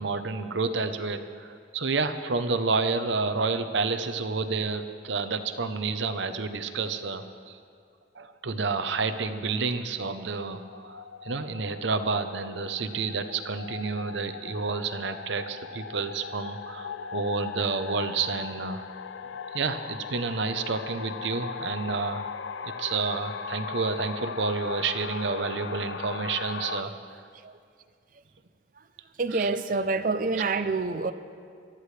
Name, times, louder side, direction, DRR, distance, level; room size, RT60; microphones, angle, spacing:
voice 1, 0.0-7.6 8.1-18.9 19.5-22.3 22.6-26.9 29.3-29.5 30.4-30.5, right 4 dB, 75° right, 9 dB, 0.8 m, -30 dB
sound 1, 10.5-26.8, left 6 dB, 80° left, 0.5 m, -38 dB
voice 2, 29.2-31.1, right 3 dB, 45° right, 12 dB, 0.5 m, -27 dB
22.5 x 13.0 x 3.3 m, 2.2 s
head